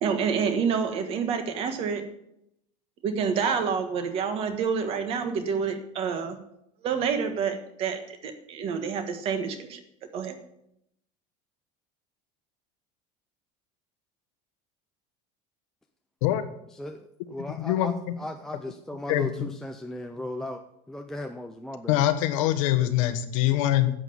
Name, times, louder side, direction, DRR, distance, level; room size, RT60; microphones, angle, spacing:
voice 1, 0.0-2.0 3.0-6.4 6.8-9.8 10.1-10.4, right 6 dB, 35° right, 8 dB, 1.4 m, -28 dB
voice 2, 16.7-20.6 20.9-22.1, left 1 dB, 5° left, 4 dB, 0.4 m, -37 dB
voice 3, 17.6-18.2 19.1-19.5 21.9-23.9, left 13 dB, 90° left, 9 dB, 1.3 m, -24 dB
11.0 x 7.8 x 7.0 m, 0.78 s
cardioid pair, 180°, 16 cm